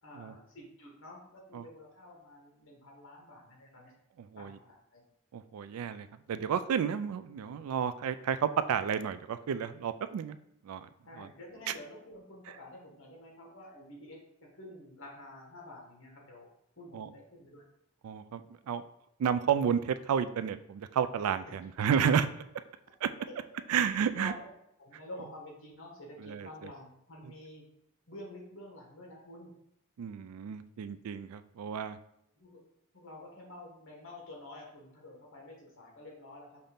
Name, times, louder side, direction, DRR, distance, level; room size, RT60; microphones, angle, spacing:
voice 1, 0.0-3.9 4.4-5.0 11.0-16.5 16.8-17.7 21.4-21.6 23.3-23.6 24.1-24.4 24.8-27.6 28.1-29.5 32.3-32.6 32.9-36.6, left 1 dB, 65° left, -2 dB, 1.4 m, -49 dB
voice 2, 4.2-4.6 5.3-10.4 10.6-10.9 11.2-11.3 16.9-17.1 18.0-18.8 19.2-22.4 23.0-23.1 23.7-24.3 26.2-26.7 30.0-32.0, right 7 dB, 85° right, 12 dB, 0.3 m, -31 dB
5.6 x 2.6 x 3.5 m, 0.78 s
head